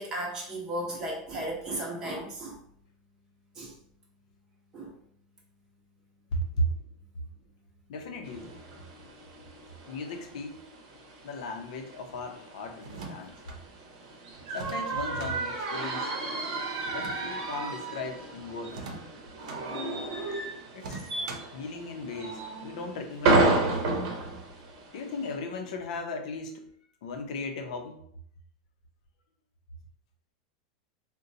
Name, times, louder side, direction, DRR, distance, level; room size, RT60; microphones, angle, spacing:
voice 1, 0.0-2.6 3.6-3.7 4.7-4.9, right 1 dB, 20° right, -2 dB, 0.8 m, -35 dB
voice 2, 6.3-6.7 7.9-8.6 9.9-10.6 11.2-13.3 14.5-16.1 16.9-18.9 20.7-21.1 21.5-23.9 24.9-26.6 27.0-28.0, left 1 dB, 70° left, 4 dB, 0.6 m, -36 dB
sound 1, 8.2-25.4, right 2 dB, 50° right, 1.1 m, -32 dB
sound 2, 12.8-13.6 14.5-15.3 16.8-17.7 18.7-19.6 20.8-21.6, right 3 dB, 85° right, 0.6 m, -42 dB
3.8 x 2.2 x 2.7 m, 0.66 s
supercardioid pair, 170°, 4 cm